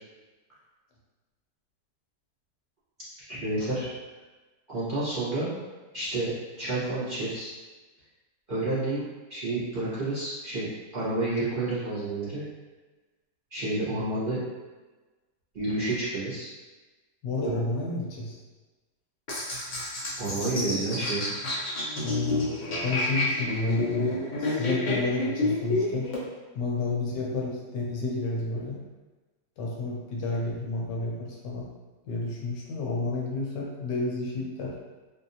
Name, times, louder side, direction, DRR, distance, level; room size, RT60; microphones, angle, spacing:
voice 1, 3.3-3.9 4.7-5.6 5.9-6.3 6.6-7.5 8.5-9.0 9.3-10.7 10.9-12.4 13.5-14.4 15.5-16.5 17.4-17.6 20.2-21.2, right 2 dB, 30° right, -12 dB, 1.2 m, -29 dB
voice 2, 17.2-18.4 22.0-26.1 26.5-28.8 29.6-31.7 32.0-34.8, left 2 dB, 80° left, -3 dB, 1.3 m, -31 dB
sound 1, 19.3-26.2, left 2 dB, 50° left, 0.5 m, -29 dB
3.7 x 2.7 x 2.7 m, 1.2 s
omnidirectional pair, 1.9 m